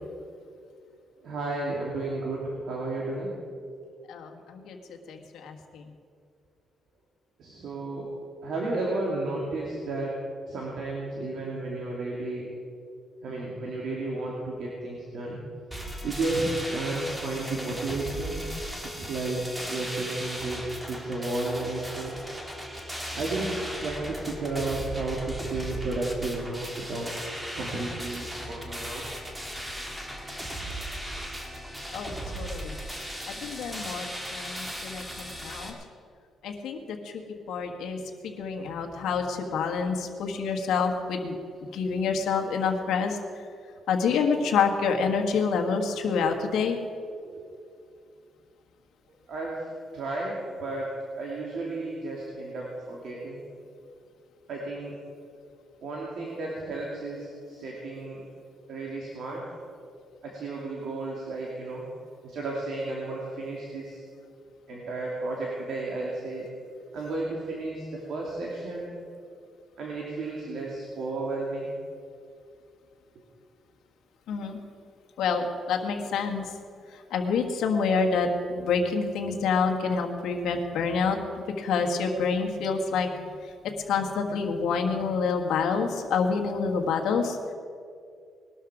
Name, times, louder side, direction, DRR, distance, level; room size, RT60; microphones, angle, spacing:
voice 1, 1.2-3.3 7.4-8.1 8.4-10.2 10.5-12.4 13.2-15.4 16.0-18.4 19.0-19.4 19.7-22.2 23.1-27.1 27.6-29.0 47.2-47.4 49.3-50.9 51.2-53.4 54.5-54.9 55.8-58.2 58.7-59.4 60.2-61.9 62.2-64.0 64.7-66.4 66.9-68.9 69.8-71.7, right 2 dB, 65° right, -3 dB, 2.6 m, -33 dB
voice 2, 4.1-4.8 5.1-5.8 31.9-32.8 33.3-34.1 34.3-35.7 36.4-37.2 37.5-41.3 41.7-43.2 43.9-46.8 74.3-74.6 75.2-76.5 76.9-81.2 81.6-83.1 83.9-87.5, left 5 dB, 85° left, 3 dB, 1.6 m, -27 dB
sound 1, 15.7-35.7, equal, 10° right, 1.9 m, -37 dB
20.0 x 12.5 x 5.0 m, 2.3 s
cardioid pair, 140°, 0 cm